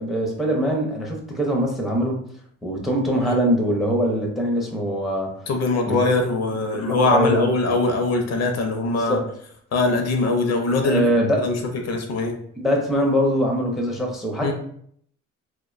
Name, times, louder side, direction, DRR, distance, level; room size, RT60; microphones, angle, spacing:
voice 1, 0.0-2.2 2.6-5.5 5.9-6.0 6.7-7.5 8.9-9.2 10.8-11.5 12.6-14.5, equal, ahead, 0 dB, 0.5 m, -23 dB
voice 2, 5.5-9.2 9.7-11.0 11.4-11.6 11.9-12.3 14.4-14.5, left 3 dB, 60° left, 4 dB, 0.6 m, -22 dB
2.4 x 2.2 x 2.4 m, 0.64 s
cardioid pair, 90°, 30 cm